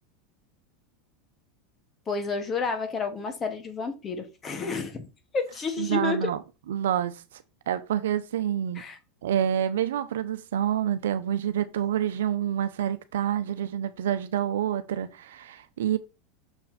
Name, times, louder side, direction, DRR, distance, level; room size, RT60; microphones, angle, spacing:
voice 1, 2.1-5.1 5.3-6.3 8.8-9.0, left 4 dB, 25° left, 2.1 m, -30 dB
voice 2, 5.8-6.4 6.7-7.2 7.7-8.8 9.2-16.0, right 10 dB, 85° right, 0.8 m, -27 dB
6.9 x 4.2 x 4.3 m
supercardioid pair, 115°, 0 cm